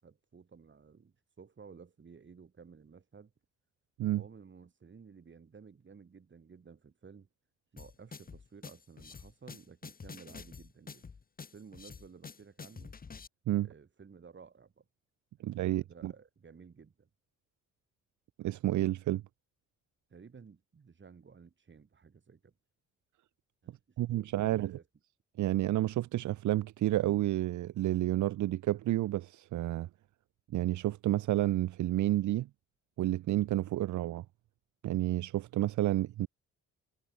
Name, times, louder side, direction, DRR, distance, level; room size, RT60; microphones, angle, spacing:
voice 1, 0.0-3.3 4.1-7.3 7.7-11.0 11.5-13.0 13.6-14.8 15.4-17.1 20.1-22.5 23.6-24.9, right 5 dB, 40° right, 7.9 m, -55 dB
sound 1, 7.8-13.3, left 5 dB, 30° left, 1.5 m, -48 dB
voice 2, 15.4-16.1 18.4-19.2 24.0-24.8 25.4-29.9 30.5-32.5 33.0-34.2 34.8-36.3, right 14 dB, 75° right, 0.9 m, -30 dB
cardioid pair, 90°, 30 cm